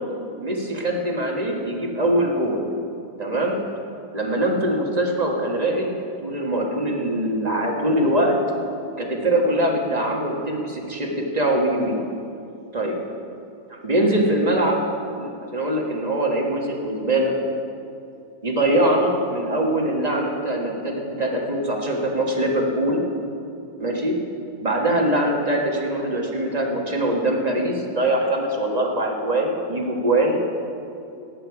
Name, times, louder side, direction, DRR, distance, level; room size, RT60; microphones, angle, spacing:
voice 1, 0.4-2.6 3.2-3.6 4.1-5.9 6.2-8.4 9.0-12.0 12.7-12.9 13.7-14.8 15.2-17.3 18.4-23.0 23.8-24.2 24.6-30.4, right 1 dB, 25° right, 0 dB, 1.5 m, -22 dB
18.0 x 8.8 x 4.9 m, 2.6 s
omnidirectional pair, 1.6 m